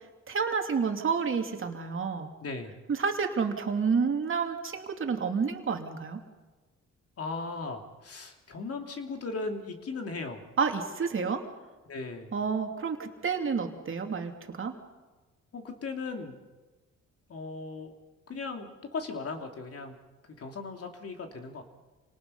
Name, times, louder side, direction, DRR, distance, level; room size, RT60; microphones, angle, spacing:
voice 1, 0.3-2.3 2.9-6.2 10.6-11.4 12.3-14.7, right 5 dB, 45° right, 4 dB, 2.8 m, -29 dB
voice 2, 2.4-2.7 7.2-10.4 11.9-12.3 15.5-16.4 17.3-17.9 18.3-20.0 20.2-21.6, left 3 dB, 50° left, 4 dB, 3.0 m, -37 dB
27.5 x 19.0 x 5.7 m, 1.2 s
cardioid pair, 90°, 30 cm